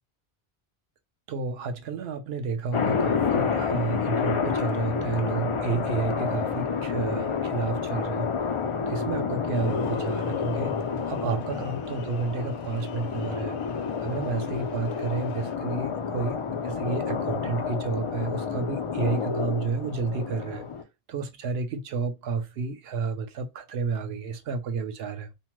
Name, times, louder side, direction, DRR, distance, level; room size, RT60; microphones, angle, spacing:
voice 1, 1.3-8.3 8.9-13.6 14.0-20.6 21.1-25.3, right 5 dB, 70° right, 0.9 m, -31 dB
sound 1, 2.7-20.8, left 5 dB, 55° left, 0.3 m, -29 dB
sound 2, 9.5-15.6, left 7 dB, 70° left, 0.8 m, -49 dB
2.8 x 2.1 x 2.9 m
omnidirectional pair, 1.1 m